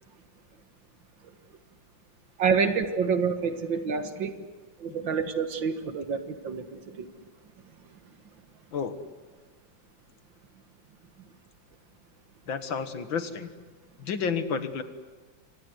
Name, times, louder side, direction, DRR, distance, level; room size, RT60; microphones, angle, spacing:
voice 1, 2.4-4.4 4.8-7.1, right 5 dB, 70° right, 8 dB, 2.3 m, -28 dB
voice 2, 12.5-13.5 14.0-14.8, left 6 dB, 80° left, 9 dB, 2.3 m, -30 dB
28.5 x 25.0 x 8.0 m, 1.4 s
omnidirectional pair, 2.1 m